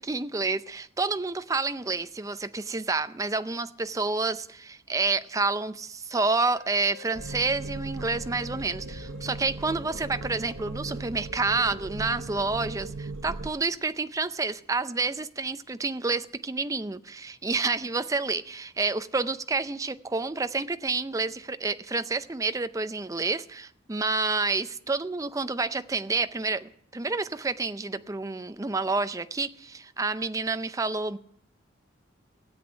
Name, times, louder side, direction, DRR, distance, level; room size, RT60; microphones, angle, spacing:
voice 1, 0.0-31.2, right 3 dB, 15° right, 0.5 m, -29 dB
Wind instrument woodwind instrument, 6.6-11.6, left 9 dB, 85° left, 2.7 m, -49 dB
sound 1, 7.1-13.5, right 3 dB, 85° right, 0.7 m, -38 dB
16.5 x 8.0 x 9.6 m
head